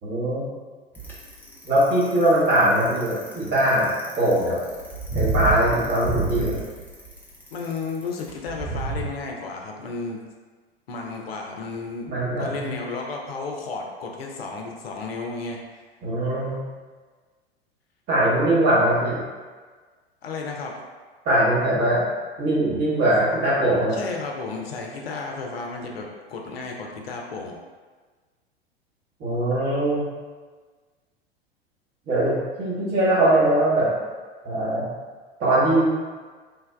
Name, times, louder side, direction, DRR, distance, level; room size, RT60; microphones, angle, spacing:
voice 1, 0.0-0.5 1.6-3.9 4.2-4.6 5.1-6.6 12.1-12.8 16.0-16.6 18.1-19.2 21.2-22.0 22.4-24.0 29.2-30.0 32.1-33.9 34.4-34.9 35.4-35.8, right 1 dB, 30° right, -7 dB, 1.0 m, -21 dB
Bicycle, 0.9-9.0, right 3 dB, 5° left, 0.5 m, -29 dB
voice 2, 7.5-10.2 10.9-12.1 12.4-15.6 20.2-20.8 23.9-27.6, left 4 dB, 70° left, 0 dB, 0.5 m, -33 dB
3.3 x 2.2 x 2.2 m, 1.4 s
figure-of-eight pair, 85°, 31 cm